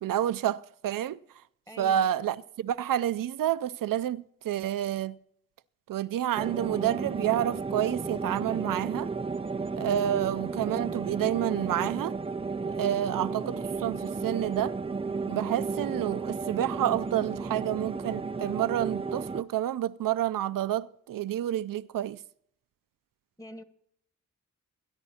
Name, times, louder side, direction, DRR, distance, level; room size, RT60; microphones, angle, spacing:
voice 1, 0.0-1.2 1.8-5.2 5.9-9.1 9.8-12.2 12.8-14.8 15.3-22.2, right 11 dB, 85° right, 0.5 m, -29 dB
voice 2, 1.7-2.1 23.4-23.6, left 1 dB, 10° left, 1.0 m, -44 dB
sound 1, 6.4-19.4, right 4 dB, 20° right, 0.4 m, -33 dB
21.5 x 10.5 x 2.8 m
cardioid pair, 70°, 32 cm